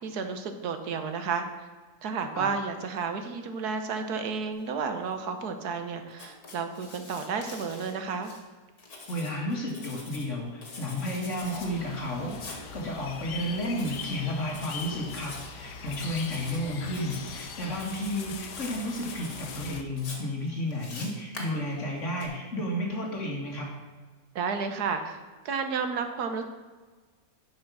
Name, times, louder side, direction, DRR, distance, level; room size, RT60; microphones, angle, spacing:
voice 1, 0.0-1.7 2.0-8.3 24.3-25.2 25.4-26.4, right 5 dB, 75° right, 7 dB, 1.5 m, -32 dB
Writing, 6.1-8.4 8.8-10.3 10.6-11.7 12.3-12.6 13.7-14.2 14.5-15.5 15.9-16.6 16.9-17.5 17.7-18.2 18.5-19.6 20.0-22.3, left 3 dB, 65° left, 2.3 m, -45 dB
voice 2, 9.1-23.7, left 1 dB, 50° left, -1 dB, 2.1 m, -32 dB
sound 1, 11.4-19.8, left 6 dB, 85° left, 1.4 m, -42 dB
10.5 x 6.1 x 6.1 m, 1.4 s
omnidirectional pair, 1.7 m